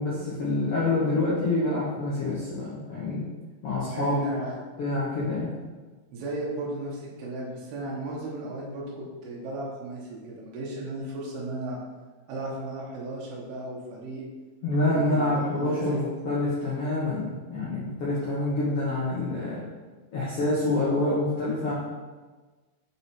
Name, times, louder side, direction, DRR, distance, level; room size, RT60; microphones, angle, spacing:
voice 1, 0.0-3.3 3.6-4.2 4.8-5.5 14.6-19.6 20.1-21.7, left 2 dB, 85° left, -8 dB, 1.3 m, -27 dB
voice 2, 3.9-4.6 6.1-11.8 12.3-14.2 14.8-16.0, right 2 dB, 75° right, -5 dB, 2.9 m, -35 dB
6.8 x 3.6 x 4.2 m, 1.3 s
omnidirectional pair, 4.6 m